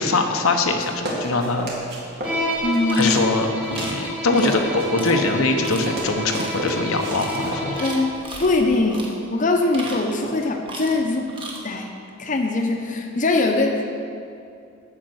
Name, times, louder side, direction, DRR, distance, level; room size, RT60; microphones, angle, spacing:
voice 1, 0.0-1.7 2.9-7.8, left 3 dB, 85° left, 3 dB, 0.9 m, -22 dB
sound 1, 0.6-4.1 4.4-8.8, right 1 dB, 50° right, 2.1 m, -32 dB
Bowed string instrument, 2.2-8.2, left 1 dB, 5° right, 1.3 m, -29 dB
voice 2, 2.6-3.2 7.8-8.1 8.4-11.3 11.6-11.9 12.2-14.0, left 2 dB, 40° left, 2 dB, 0.8 m, -22 dB
sound 2, 2.8-3.2 3.7-4.0 4.3-4.6 5.0-5.1 5.6-5.9 6.3-6.6 7.1-7.4 7.7-8.5 8.9-9.1 9.6-10.3 10.7-11.0 11.3-11.6, right 2 dB, 25° right, 1.3 m, -36 dB
8.4 x 6.5 x 7.9 m, 2.5 s
head